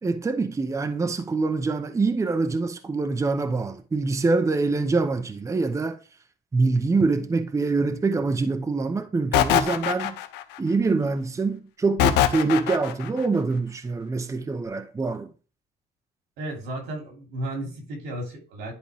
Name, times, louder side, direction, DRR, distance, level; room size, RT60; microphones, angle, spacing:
voice 1, 0.0-6.0 6.5-10.2 10.6-15.3, right 3 dB, 20° right, 0.7 m, -25 dB
sound 1, 9.3-10.6 12.0-13.1, left 12 dB, 85° left, 0.8 m, -22 dB
voice 2, 16.4-18.7, right 1 dB, 85° right, 2.9 m, -33 dB
10.5 x 4.3 x 3.4 m
cardioid pair, 110°, 17 cm